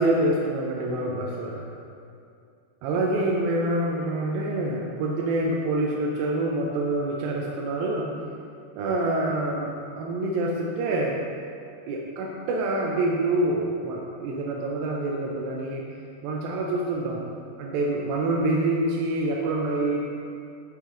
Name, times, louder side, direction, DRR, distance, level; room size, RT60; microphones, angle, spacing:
voice 1, 0.0-1.7 2.8-8.1 8.8-11.2 11.9-15.9 16.2-17.3 17.6-20.0, right 2 dB, 80° right, -2 dB, 2.1 m, -26 dB
10.5 x 4.7 x 3.7 m, 2.5 s
omnidirectional pair, 4.8 m